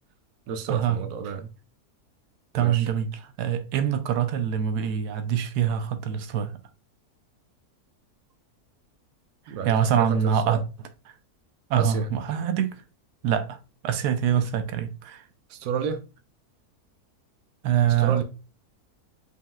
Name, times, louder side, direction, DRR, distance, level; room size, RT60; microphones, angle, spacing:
voice 1, 0.5-1.5 2.6-2.9 9.5-10.6 11.7-12.1 14.3-14.5 15.5-16.0 18.0-18.2, right 6 dB, 70° right, 1.0 m, -31 dB
voice 2, 2.5-3.1 3.4-6.5 9.5-10.6 11.7-12.8 13.2-15.2 17.6-18.2, right 9 dB, 90° right, 1.1 m, -24 dB
5.1 x 3.5 x 2.2 m
omnidirectional pair, 1.6 m